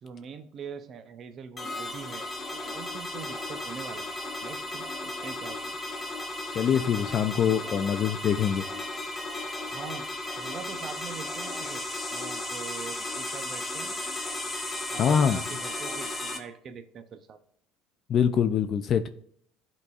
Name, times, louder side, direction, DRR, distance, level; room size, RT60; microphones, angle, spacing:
voice 1, 0.0-4.1 4.4-5.8 9.7-10.1 10.4-11.8 12.1-14.0 14.9-17.4, right 6 dB, 40° right, 0.7 m, -43 dB
sound 1, 1.6-16.4, left 2 dB, 20° left, 1.3 m, -35 dB
voice 2, 6.5-8.6 15.0-15.4 18.1-19.1, left 8 dB, 40° left, 0.4 m, -24 dB
12.0 x 4.0 x 2.4 m
supercardioid pair, 115°, 0 cm